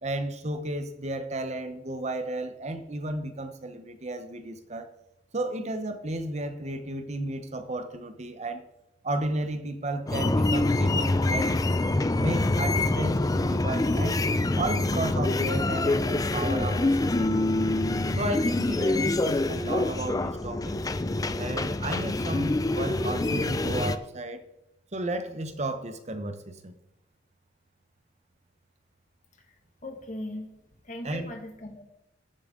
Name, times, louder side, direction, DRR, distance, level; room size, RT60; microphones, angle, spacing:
voice 1, 0.0-4.9 5.3-8.6 9.0-11.5 12.2-14.2 14.6-17.7 18.2-20.8 21.3-24.4 24.9-26.8 31.0-31.3, right 2 dB, 35° right, 9 dB, 0.9 m, -33 dB
sound 1, 10.1-24.0, left 2 dB, 20° left, 0.4 m, -26 dB
voice 2, 29.8-30.5 30.8-31.8, left 1 dB, 40° left, 2 dB, 1.9 m, -38 dB
13.5 x 7.3 x 3.8 m, 0.88 s
head